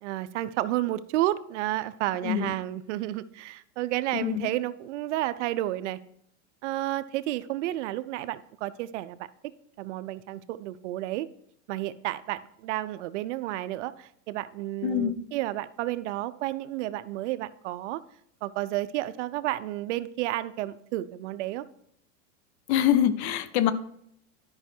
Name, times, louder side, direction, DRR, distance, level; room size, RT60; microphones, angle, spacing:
voice 1, 0.0-6.0 6.6-9.3 9.8-11.3 11.7-18.0 18.4-21.6, right 15 dB, 65° right, 15 dB, 0.6 m, -31 dB
voice 2, 4.1-4.5 14.8-15.2 22.7-23.7, left 10 dB, 60° left, 14 dB, 0.8 m, -24 dB
11.5 x 5.6 x 4.4 m, 0.72 s
supercardioid pair, 140°, 38 cm